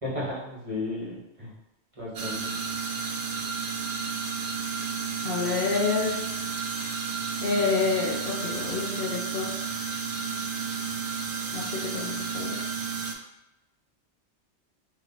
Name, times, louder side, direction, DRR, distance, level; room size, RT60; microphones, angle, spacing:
voice 1, 0.0-1.5 2.0-2.6, left 2 dB, 30° right, -7 dB, 1.3 m, -34 dB
sound 1, 2.1-13.1, right 5 dB, 60° right, 0.4 m, -32 dB
voice 2, 5.2-6.2 7.4-9.5 11.5-12.6, left 4 dB, 60° left, -3 dB, 0.7 m, -28 dB
3.1 x 2.8 x 3.9 m, 0.93 s
omnidirectional pair, 1.2 m